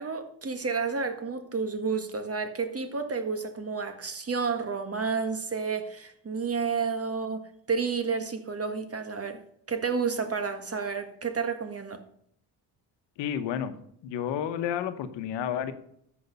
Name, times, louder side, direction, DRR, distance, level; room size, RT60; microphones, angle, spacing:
voice 1, 0.0-9.4 9.7-12.0, right 5 dB, 35° right, 8 dB, 1.7 m, -31 dB
voice 2, 13.2-13.7 14.0-15.7, left 9 dB, 90° left, 10 dB, 1.0 m, -30 dB
14.0 x 5.3 x 5.4 m, 0.69 s
supercardioid pair, 70°, 42 cm